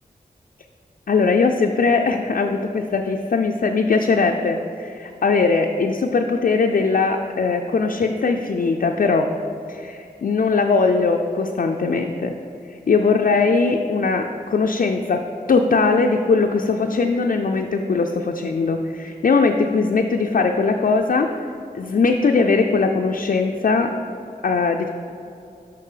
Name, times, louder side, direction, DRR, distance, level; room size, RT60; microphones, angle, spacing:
voice 1, 1.1-9.3 9.7-12.3 12.7-15.2 15.5-21.3 21.7-23.9 24.4-24.9, left 4 dB, 60° left, 3 dB, 0.4 m, -20 dB
6.7 x 5.2 x 4.9 m, 2.7 s
wide cardioid pair, 55°, 16 cm